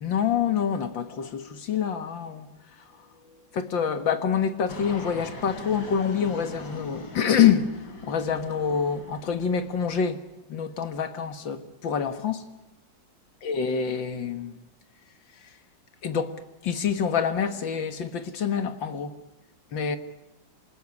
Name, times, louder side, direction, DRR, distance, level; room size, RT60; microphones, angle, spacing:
voice 1, 0.0-2.5 3.5-7.7 8.0-10.2 10.5-12.4 13.4-14.6 16.0-16.3 16.6-19.1 19.7-20.0, left 7 dB, 85° left, 2.3 m, -26 dB
Fixed-wing aircraft airplane, 4.7-10.1, left 2 dB, 65° left, 4.1 m, -41 dB
27.5 x 19.5 x 9.7 m
omnidirectional pair, 2.0 m